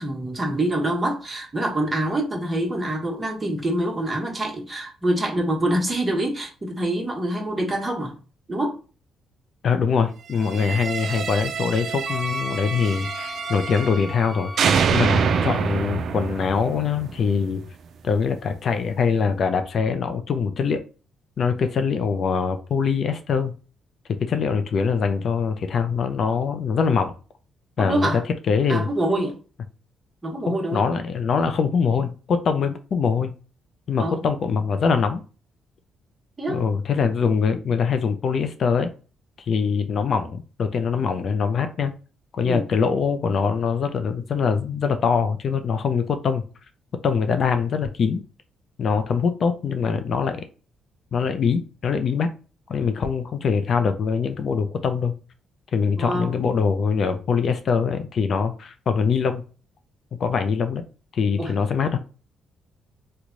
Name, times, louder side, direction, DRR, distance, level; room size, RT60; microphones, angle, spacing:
voice 1, 0.0-8.2 8.5-8.7 27.8-28.2 28.7-29.4 30.2-30.9 34.0-34.2 36.4-36.6 42.4-42.7 56.0-56.3 61.4-61.5, right 1 dB, 25° right, 0 dB, 1.2 m, -25 dB
voice 2, 9.6-17.6 18.0-20.8 21.4-23.5 24.2-27.1 27.8-28.1 28.5-28.9 30.5-33.3 33.9-35.2 36.5-38.9 39.4-41.9 42.3-46.4 47.0-48.2 48.8-50.4 51.1-52.3 52.7-55.1 55.7-59.4 60.1-60.8 61.1-62.0, left 5 dB, 55° left, 8 dB, 0.5 m, -23 dB
sound 1, 10.4-14.3 14.6-17.6, right 6 dB, 65° right, 0.4 m, -26 dB
Wind instrument woodwind instrument, 12.1-15.7, left 2 dB, 15° left, 0.5 m, -35 dB
3.1 x 2.2 x 3.8 m, 0.35 s
cardioid pair, 90°, 0 cm